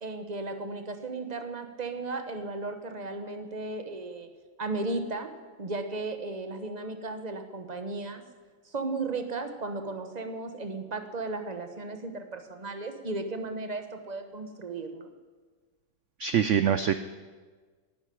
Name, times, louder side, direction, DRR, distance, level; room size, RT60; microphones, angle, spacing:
voice 1, 0.0-4.3 4.6-5.3 5.6-8.2 8.6-15.1, right 3 dB, 30° right, 7 dB, 1.0 m, -35 dB
voice 2, 16.2-17.0, right 9 dB, 85° right, 11 dB, 0.6 m, -24 dB
11.0 x 10.5 x 10.0 m, 1.4 s
omnidirectional pair, 1.9 m